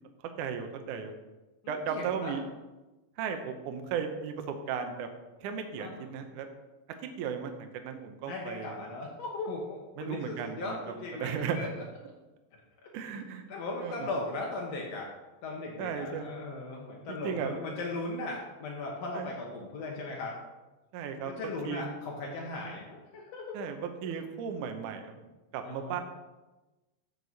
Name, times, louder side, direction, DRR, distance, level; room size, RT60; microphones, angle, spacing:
voice 1, 0.4-1.1 1.7-2.4 3.2-5.1 5.4-6.5 7.0-8.8 10.0-11.7 12.9-13.4 13.8-14.1 15.8-16.3 17.1-17.6 19.1-19.3 20.9-21.8 23.5-25.2 25.5-26.0, right 7 dB, 80° right, 5 dB, 1.8 m, -36 dB
voice 2, 1.6-2.4 5.8-5.9 8.3-11.3 11.5-11.7 13.5-15.1 15.4-20.3 21.2-23.5 25.6-26.0, left 2 dB, 75° left, -2 dB, 1.5 m, -38 dB
14.5 x 6.2 x 4.1 m, 1.1 s
omnidirectional pair, 4.8 m